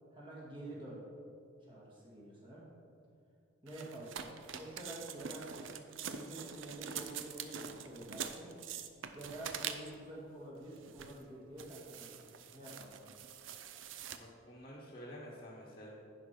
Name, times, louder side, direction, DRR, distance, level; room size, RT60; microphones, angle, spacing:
voice 1, 0.1-1.0 1.7-2.6 3.6-4.3 4.5-5.8 6.1-8.5 9.1-13.0, right 1 dB, 25° right, -5 dB, 2.1 m, -48 dB
sound 1, 3.7-10.1 10.7-11.2 11.6-14.2, right 8 dB, 75° right, 0.5 m, -45 dB
voice 2, 4.0-4.3 14.1-15.9, equal, 25° left, -6 dB, 1.2 m, -51 dB
10.5 x 4.5 x 5.3 m, 2.3 s
head